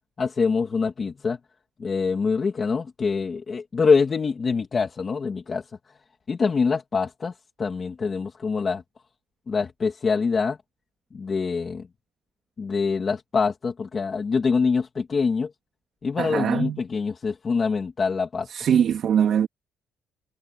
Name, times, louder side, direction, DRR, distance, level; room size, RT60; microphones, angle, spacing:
voice 1, 0.2-1.4 1.8-5.6 6.3-7.3 7.6-8.8 9.5-10.6 11.1-11.8 12.6-15.5 16.0-18.5, left 5 dB, 25° left, 2.6 m, -24 dB
voice 2, 16.2-16.8 18.5-19.5, right 8 dB, 50° right, 2.5 m, -22 dB
cardioid pair, 160°, 0 cm